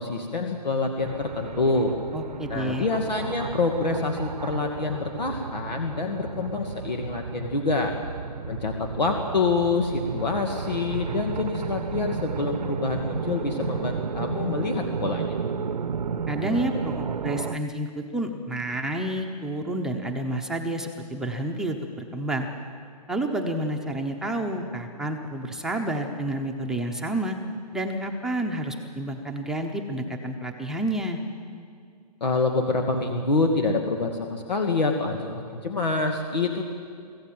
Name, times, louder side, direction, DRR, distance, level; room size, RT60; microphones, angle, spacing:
voice 1, 0.0-1.9 2.5-7.9 8.5-15.3 32.2-36.7, left 3 dB, 85° left, 3 dB, 2.2 m, -26 dB
sound 1, 1.0-17.6, right 6 dB, 80° right, 0.9 m, -33 dB
voice 2, 2.1-2.9 16.3-22.5 23.1-27.4 27.7-31.2, right 1 dB, 5° right, 0 dB, 0.8 m, -29 dB
25.0 x 15.5 x 7.6 m, 2.2 s
hypercardioid pair, 145°, 21 cm